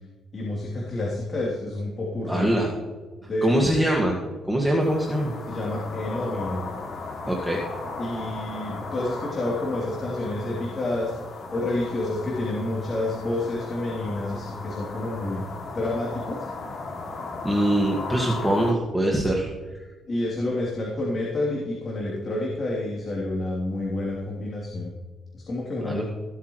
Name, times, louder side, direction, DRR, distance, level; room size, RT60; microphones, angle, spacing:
voice 1, 0.3-2.7 3.2-3.9 5.5-6.6 8.0-11.1 11.5-15.4 15.7-16.5 20.0-24.9 25.3-26.0, left 2 dB, 40° left, -4 dB, 3.2 m, -29 dB
voice 2, 2.3-2.7 3.4-4.2 4.5-5.3 7.3-7.6 17.4-19.5 25.8-26.0, right 1 dB, 5° right, -1 dB, 1.9 m, -23 dB
sound 1, 4.8-18.7, left 3 dB, 55° left, 2.4 m, -36 dB
18.0 x 8.4 x 3.1 m, 1.4 s
cardioid pair, 90°, 0 cm